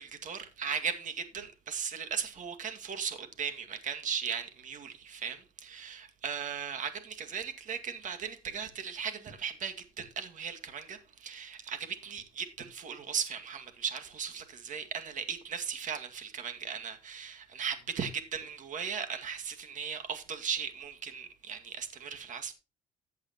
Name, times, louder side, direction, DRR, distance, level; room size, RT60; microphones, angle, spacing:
voice 1, 0.0-22.5, right 7 dB, 50° right, 2.1 m, -37 dB
14.5 x 8.3 x 2.9 m
cardioid pair, 110°, 17 cm